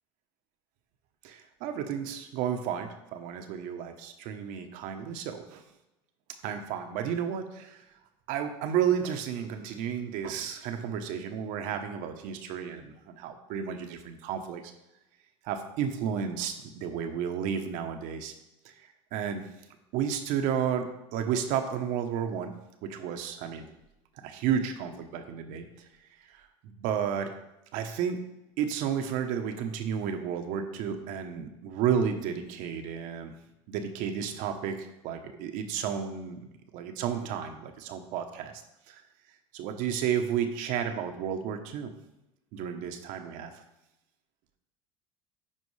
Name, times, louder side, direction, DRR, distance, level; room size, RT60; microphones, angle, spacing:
voice 1, 1.2-5.6 6.4-7.8 8.3-14.6 15.4-18.3 19.1-19.5 19.9-22.5 22.8-23.7 24.2-25.6 26.3-26.5 26.8-27.3 27.7-28.2 28.6-33.3 33.7-36.4 36.7-38.5 38.9-39.0 39.5-41.9 42.5-43.5, right 8 dB, 65° right, 6 dB, 0.9 m, -32 dB
9.8 x 4.5 x 3.2 m, 0.91 s
supercardioid pair, 100°, 15 cm